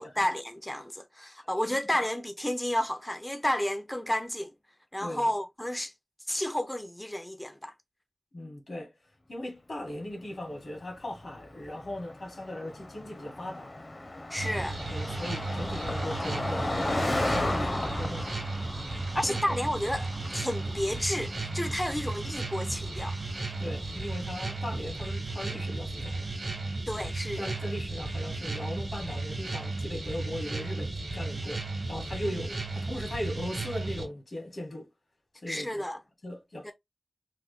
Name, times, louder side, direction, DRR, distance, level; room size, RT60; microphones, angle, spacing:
voice 1, 0.0-4.5 4.9-5.9 6.3-7.7 14.3-14.8 19.1-23.2 26.9-27.5 35.5-36.0 36.6-36.7, left 1 dB, 15° left, 0.4 m, -31 dB
voice 2, 5.0-5.3 8.3-8.9 9.3-13.7 14.9-18.4 19.2-19.4 23.6-26.3 27.4-34.9 35.4-35.8 36.2-36.7, left 1 dB, 75° left, 1.5 m, -38 dB
Car passing by, 10.6-24.3, left 2 dB, 55° left, 0.8 m, -36 dB
sound 1, 14.4-34.1, right 3 dB, 70° right, 1.0 m, -34 dB
3.3 x 2.1 x 3.2 m
wide cardioid pair, 60°, 0 cm